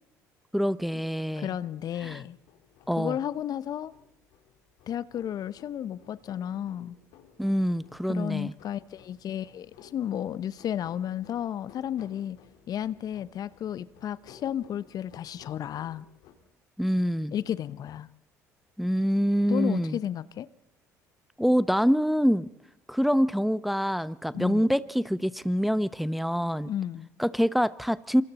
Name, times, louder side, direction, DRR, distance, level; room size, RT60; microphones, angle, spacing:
voice 1, 0.5-1.6 2.0-2.2 2.9-3.2 7.4-8.5 16.8-17.3 18.8-20.0 21.4-22.5 22.9-26.7 27.2-28.2, equal, ahead, 0.9 m, -25 dB
voice 2, 1.4-2.4 3.0-3.9 4.9-7.0 8.1-12.4 12.7-16.0 17.3-18.1 19.5-20.5 24.3-24.6 26.7-27.1, left 10 dB, 50° left, 0.9 m, -33 dB
sound 1, 1.6-16.3, left 8 dB, 70° left, 4.3 m, -57 dB
27.0 x 27.0 x 4.2 m
hypercardioid pair, 60°, 8 cm